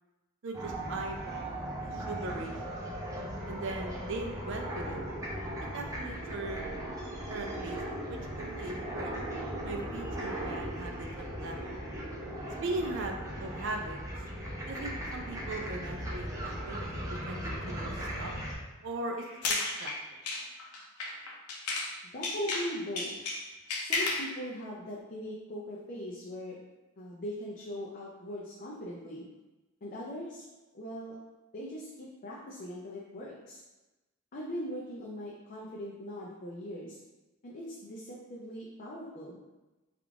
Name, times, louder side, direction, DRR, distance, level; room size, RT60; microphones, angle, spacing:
voice 1, 0.4-2.9 3.5-5.0 5.6-6.8 7.3-9.1 9.6-11.8 12.6-14.0 14.7-18.3 18.8-19.9, right 2 dB, 60° right, 3 dB, 0.5 m, -39 dB
sound 1, 0.5-18.5, right 1 dB, 15° right, 0.6 m, -38 dB
sound 2, 19.2-22.0 22.2-24.3, left 3 dB, 90° left, 0.5 m, -33 dB
voice 2, 22.1-23.1 23.8-26.6 27.0-29.3 29.8-31.2 31.5-33.6 34.3-37.0 37.4-39.4, equal, 40° left, -4 dB, 0.5 m, -40 dB
3.6 x 2.4 x 3.4 m, 1.1 s
head